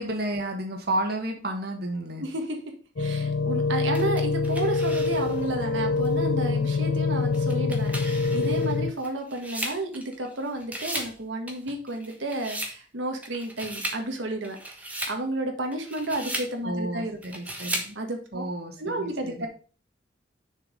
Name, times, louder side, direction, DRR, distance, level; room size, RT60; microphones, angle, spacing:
voice 1, 0.0-2.2 16.6-17.9 18.3-19.5, right 1 dB, 55° right, 3 dB, 1.5 m, -31 dB
voice 2, 2.2-2.6 3.0-14.6 15.1-17.2 17.9-18.4 18.8-19.5, right 2 dB, 90° right, 3 dB, 1.5 m, -32 dB
sound 1, 3.0-8.9, left 4 dB, 85° left, 0.6 m, -25 dB
sound 2, 3.9-5.5 6.0-6.1 7.3-10.3 10.6-11.2 11.5-12.8 13.2-14.0 14.4-15.2 15.7-16.5 17.2-17.9, right 1 dB, 10° right, 1.3 m, -36 dB
6.7 x 4.8 x 5.0 m, 0.38 s
head